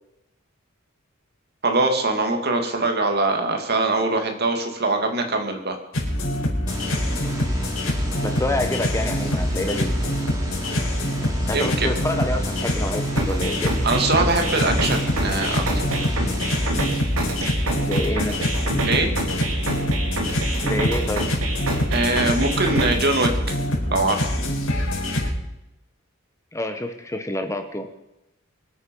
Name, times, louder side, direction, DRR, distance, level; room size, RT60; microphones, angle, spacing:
voice 1, 1.6-5.8 11.5-11.9 13.8-16.0 18.8-19.1 21.9-23.6 23.9-24.3, right 2 dB, 50° right, 4 dB, 2.4 m, -22 dB
sound 1, 5.9-25.3, left 1 dB, 85° left, 4.6 m, -25 dB
sound 2, 6.7-16.7, equal, 15° right, 2.9 m, -33 dB
voice 2, 8.2-9.9 11.5-13.7 17.8-18.5 20.6-21.3 26.5-27.9, left 1 dB, 15° left, 6 dB, 1.1 m, -27 dB
sound 3, 13.2-23.2, right 1 dB, 90° right, 2.7 m, -28 dB
24.5 x 8.8 x 5.4 m, 0.90 s
head